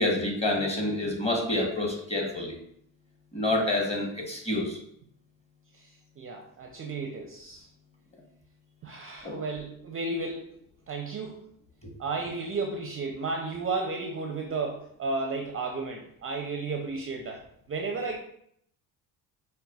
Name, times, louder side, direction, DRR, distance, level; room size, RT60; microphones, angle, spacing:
voice 1, 0.0-2.6 3.3-4.8 9.2-9.4, left 1 dB, 15° left, 0 dB, 1.1 m, -28 dB
voice 2, 6.2-7.7 8.8-10.5 10.9-11.4 12.0-17.4 17.7-18.2, right 3 dB, 30° right, 2 dB, 0.5 m, -33 dB
5.4 x 2.1 x 2.3 m, 0.69 s
supercardioid pair, 70°, 44 cm